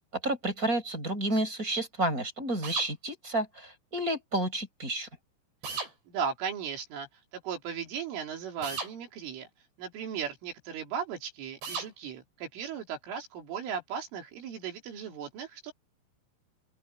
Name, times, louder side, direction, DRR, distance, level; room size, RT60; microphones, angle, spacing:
voice 1, 0.2-5.1, right 1 dB, 15° right, 5.5 m, -30 dB
sound 1, 2.6-2.9 5.6-5.9 8.6-8.9 11.6-11.9, right 4 dB, 60° right, 8.1 m, -35 dB
voice 2, 5.7-9.5 9.8-15.7, right 7 dB, 75° right, 5.9 m, -37 dB
open air
omnidirectional pair, 5.7 m